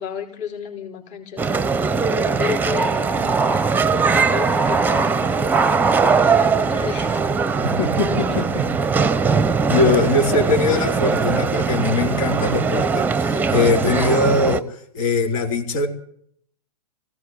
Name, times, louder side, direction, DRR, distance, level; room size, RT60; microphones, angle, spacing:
voice 1, 0.0-1.6 2.4-3.6 3.9-5.9 6.3-7.3 7.9-8.5, left 8 dB, 35° left, 2 dB, 4.8 m, -32 dB
sound 1, 1.4-14.6, right 5 dB, 10° right, 1.0 m, -20 dB
voice 2, 7.6-8.7 9.7-15.9, left 3 dB, 60° left, 0 dB, 4.8 m, -21 dB
23.5 x 16.5 x 8.4 m, 0.66 s
hypercardioid pair, 120°, 19 cm